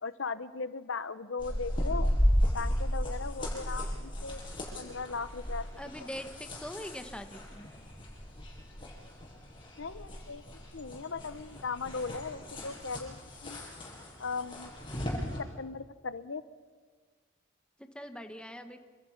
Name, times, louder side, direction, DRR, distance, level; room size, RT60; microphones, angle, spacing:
voice 1, 0.0-2.1 2.5-4.4 4.8-5.7 9.8-10.4 10.7-13.6 14.2-14.7 15.4-16.4, left 4 dB, 75° left, 13 dB, 0.9 m, -38 dB
sound 1, 1.4-15.4, equal, 25° left, 7.1 m, -34 dB
voice 2, 5.8-7.7 17.8-18.8, equal, 5° left, 7 dB, 1.4 m, -42 dB
28.0 x 26.5 x 5.9 m, 1.5 s
head